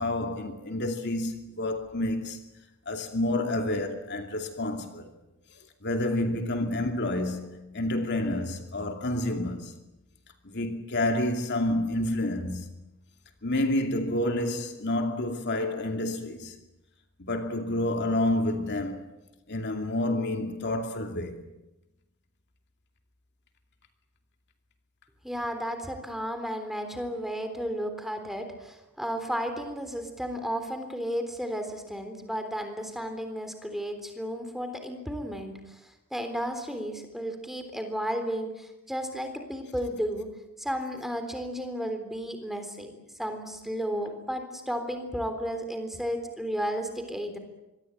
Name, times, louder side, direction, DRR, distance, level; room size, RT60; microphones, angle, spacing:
voice 1, 0.0-2.4 2.9-5.1 5.5-9.7 10.4-12.7 13.4-16.6 17.2-19.1 19.5-21.4, left 1 dB, 50° left, 2.6 m, -29 dB
voice 2, 25.2-40.3 40.6-42.9 43.2-47.4, equal, ahead, 3.6 m, -33 dB
26.0 x 22.0 x 9.1 m
head